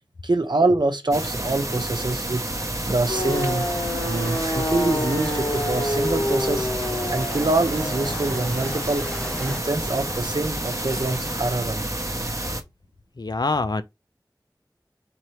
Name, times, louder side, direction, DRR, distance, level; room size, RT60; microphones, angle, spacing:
voice 1, 0.2-2.4 2.8-3.7 4.1-6.7 7.1-9.1 9.4-12.0, right 2 dB, 80° right, 0.8 m, -25 dB
sound 1, 1.1-12.6, right 1 dB, 45° right, 0.8 m, -29 dB
sound 2, 3.1-11.4, left 1 dB, 85° left, 1.2 m, -30 dB
sound 3, 3.1-9.6, equal, 15° left, 0.7 m, -39 dB
voice 2, 13.2-13.8, left 3 dB, 65° left, 0.5 m, -24 dB
4.5 x 2.8 x 3.1 m
wide cardioid pair, 45°, 8 cm